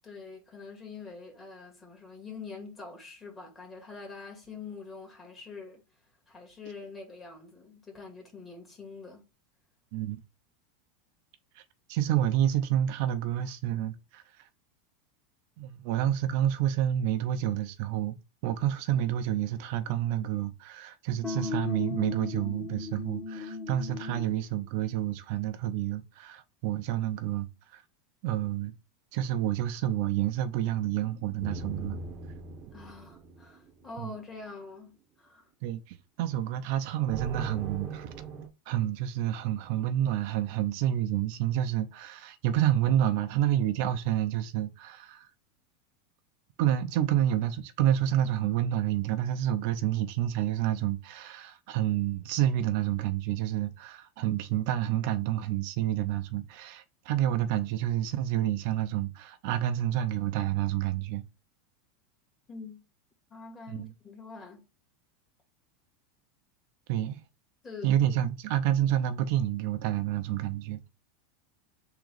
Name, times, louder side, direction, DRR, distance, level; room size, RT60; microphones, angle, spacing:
voice 1, 0.0-5.8 6.3-9.2 32.7-35.5 62.5-62.8 63.3-64.6 67.6-67.9, left 4 dB, 20° left, 1.9 m, -45 dB
voice 2, 11.9-14.5 15.6-18.2 18.4-27.8 28.2-28.7 29.1-32.0 34.0-34.1 35.6-38.1 38.7-45.3 46.6-61.2 63.7-63.9 66.9-67.2 67.8-70.9, right 11 dB, 55° right, 0.5 m, -29 dB
sound 1, 21.2-24.4, left 4 dB, ahead, 1.1 m, -36 dB
sound 2, 31.4-34.1 37.1-38.5, right 4 dB, 25° right, 0.9 m, -40 dB
3.8 x 2.9 x 4.6 m
supercardioid pair, 150°, 0 cm